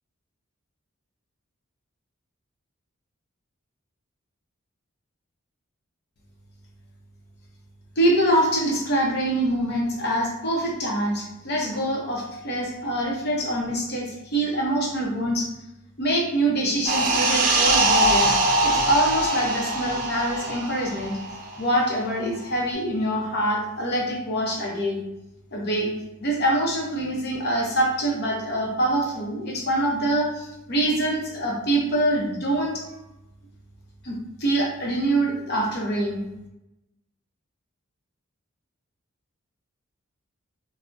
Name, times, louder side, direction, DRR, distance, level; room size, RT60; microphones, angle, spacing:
voice 1, 8.0-15.5 16.0-21.1 21.6-25.0 25.5-25.9 26.2-32.8 34.0-36.2, right 1 dB, 50° left, -1 dB, 0.6 m, -25 dB
sound 1, 16.9-21.9 22.2-22.4, right 2 dB, 40° right, 0.4 m, -22 dB
3.7 x 2.0 x 2.3 m, 0.92 s
head